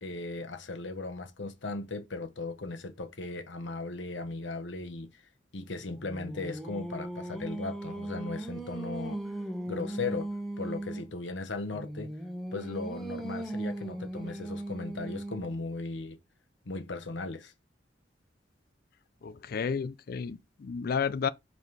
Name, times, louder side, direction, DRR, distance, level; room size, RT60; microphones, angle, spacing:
voice 1, 0.0-5.2 5.5-9.3 9.7-10.3 10.6-12.1 12.5-16.2 16.6-17.5, left 3 dB, 85° left, 1.1 m, -37 dB
Singing, 5.7-11.1 11.7-15.6, right 1 dB, ahead, 1.0 m, -38 dB
voice 2, 19.2-21.3, left 6 dB, 55° left, 0.4 m, -32 dB
5.5 x 4.1 x 4.6 m
head